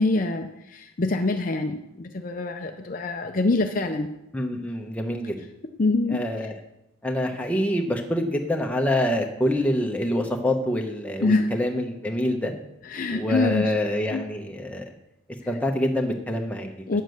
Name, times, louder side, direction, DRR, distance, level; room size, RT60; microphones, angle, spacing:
voice 1, 0.0-4.1 5.8-6.2 11.2-11.5 12.9-13.7 14.1-14.3 16.9-17.0, left 3 dB, 40° left, 5 dB, 0.5 m, -25 dB
voice 2, 4.3-5.4 6.1-6.6 7.0-12.5 13.1-14.8 15.5-16.7, left 1 dB, 5° left, 2 dB, 1.0 m, -26 dB
9.2 x 7.5 x 6.4 m, 0.87 s
head